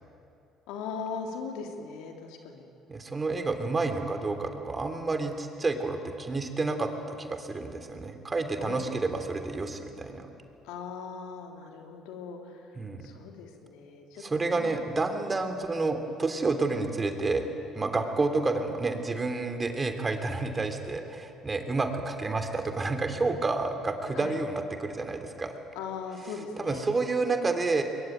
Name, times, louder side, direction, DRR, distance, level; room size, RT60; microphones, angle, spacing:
voice 1, 0.7-2.7 8.6-8.9 10.6-14.2 14.5-14.7 15.0-15.1 15.4-15.6 24.1-24.4 25.7-26.8, left 5 dB, 75° left, 3 dB, 3.3 m, -39 dB
voice 2, 2.9-10.3 12.8-13.0 14.2-17.5 17.7-25.6 26.6-27.8, right 3 dB, 25° right, 6 dB, 3.2 m, -29 dB
22.5 x 22.0 x 9.4 m, 2.6 s
hypercardioid pair, 65°, 0 cm